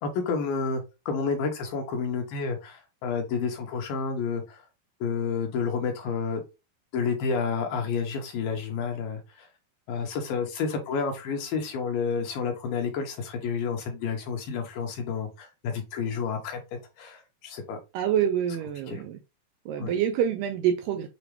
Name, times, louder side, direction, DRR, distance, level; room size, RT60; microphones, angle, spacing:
voice 1, 0.0-4.6 5.0-6.4 6.9-9.5 9.9-16.6 17.0-17.8 18.9-19.0 19.8-19.9, left 5 dB, 75° left, 2.4 m, -30 dB
voice 2, 17.9-19.2 19.7-21.1, right 9 dB, 80° right, 2.0 m, -26 dB
6.9 x 2.3 x 3.1 m
omnidirectional pair, 4.4 m